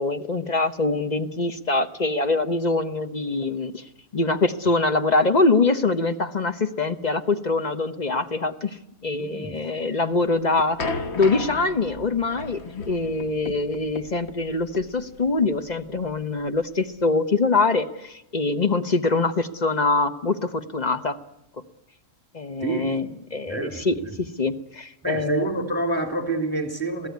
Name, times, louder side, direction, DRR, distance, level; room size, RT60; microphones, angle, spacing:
voice 1, 0.0-3.9 4.1-8.8 9.0-21.2 22.3-25.5, left 3 dB, 35° left, 9 dB, 1.1 m, -24 dB
voice 2, 9.1-9.5 22.6-22.9 23.5-24.2 25.0-27.1, right 2 dB, 5° left, 5 dB, 3.4 m, -28 dB
sound 1, 10.1-17.0, left 3 dB, 50° left, 1.4 m, -35 dB
26.5 x 17.0 x 9.5 m, 0.90 s
omnidirectional pair, 1.5 m